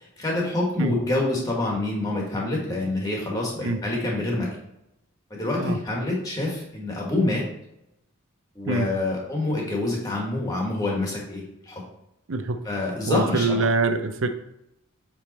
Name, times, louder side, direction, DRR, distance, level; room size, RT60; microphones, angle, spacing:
voice 1, 0.2-4.5 5.3-7.4 8.5-11.8 12.6-13.6, left 2 dB, 15° left, -2 dB, 1.6 m, -26 dB
voice 2, 12.3-12.6 13.1-14.3, right 3 dB, 70° right, 8 dB, 0.6 m, -24 dB
8.0 x 3.5 x 4.2 m, 0.83 s
head